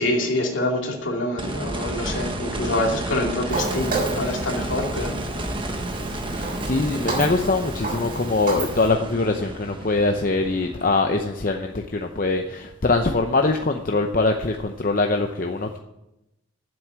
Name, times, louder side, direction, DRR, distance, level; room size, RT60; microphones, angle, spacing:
voice 1, 0.0-5.2 5.5-5.6, left 1 dB, 65° left, 1 dB, 2.5 m, -26 dB
sound 1, 1.4-12.3 14.6-14.7, right 1 dB, 25° right, 1.3 m, -31 dB
Walk footsteps, 3.5-8.9, right 3 dB, 45° right, 5.5 m, -31 dB
voice 2, 6.3-15.8, left 3 dB, 40° left, 4 dB, 0.7 m, -23 dB
9.5 x 7.7 x 9.5 m, 0.90 s
head